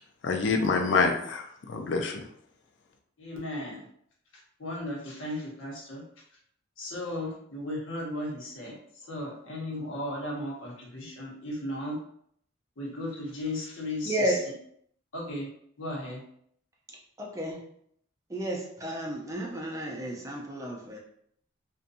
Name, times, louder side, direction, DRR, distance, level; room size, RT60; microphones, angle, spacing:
voice 1, 0.2-2.2, left 4 dB, 65° left, 4 dB, 0.4 m, -26 dB
voice 2, 3.2-3.8 4.6-6.0 6.8-8.8 9.1-12.0 12.8-14.4 15.1-15.5 15.8-16.2, left 1 dB, 85° left, -3 dB, 0.8 m, -35 dB
voice 3, 14.1-14.4 17.2-17.6 18.3-21.0, right 1 dB, 15° right, -2 dB, 0.5 m, -32 dB
2.6 x 2.2 x 2.6 m, 0.68 s
head